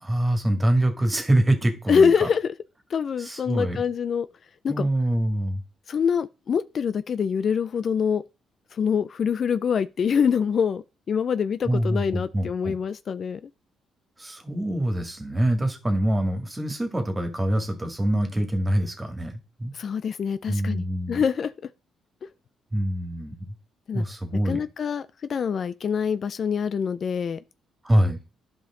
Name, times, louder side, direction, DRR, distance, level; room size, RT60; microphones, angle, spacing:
voice 1, 0.0-2.3 3.2-3.8 4.7-5.6 11.7-12.8 14.2-19.7 20.5-21.2 22.7-23.5 23.9-24.6 27.8-28.2, right 1 dB, 20° right, 2.1 m, -25 dB
voice 2, 1.9-2.5 2.9-4.3 4.6-4.9 5.9-8.2 8.7-13.4 19.7-21.5 23.9-24.0 24.4-27.4, left 6 dB, 50° left, 0.4 m, -25 dB
11.0 x 5.2 x 3.7 m
cardioid pair, 90°, 0 cm